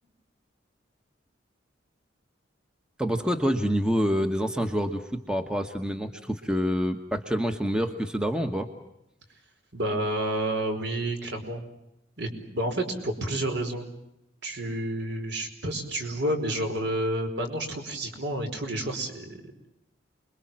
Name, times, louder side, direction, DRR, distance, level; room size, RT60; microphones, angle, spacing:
voice 1, 3.0-8.7, equal, 5° right, 6 dB, 1.2 m, -27 dB
voice 2, 9.7-11.6 12.2-13.9 14.4-19.4, right 1 dB, 60° right, 5 dB, 5.0 m, -30 dB
29.0 x 22.0 x 7.5 m, 0.86 s
head